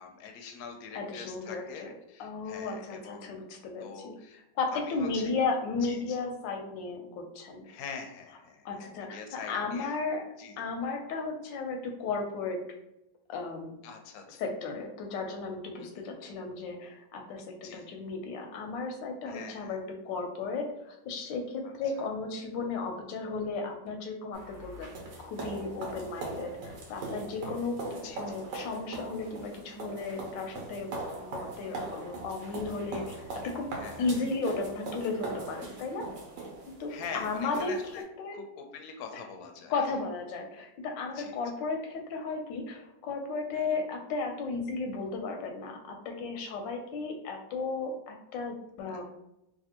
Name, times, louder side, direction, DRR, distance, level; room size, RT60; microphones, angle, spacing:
voice 1, 0.0-3.4 3.8-4.4 4.7-5.3 5.8-6.2 7.6-10.0 10.4-10.5 13.8-14.5 15.8-16.0 17.6-17.9 19.3-19.8 21.6-22.0 28.0-28.4 33.8-34.1 36.9-38.0 38.3-39.7 41.1-41.4 43.5-43.8 48.9-49.0, left 5 dB, 70° left, 4 dB, 0.9 m, -44 dB
voice 2, 0.9-1.9 2.2-4.2 4.5-7.6 8.6-10.2 10.6-12.6 13.3-13.7 14.4-24.9 25.2-33.7 34.0-36.0 36.8-38.4 39.1-39.2 39.7-49.0, left 4 dB, 90° left, 3 dB, 1.3 m, -35 dB
sound 1, 24.3-38.0, right 2 dB, 90° right, 1.4 m, -41 dB
3.3 x 2.5 x 2.8 m, 0.85 s
omnidirectional pair, 1.9 m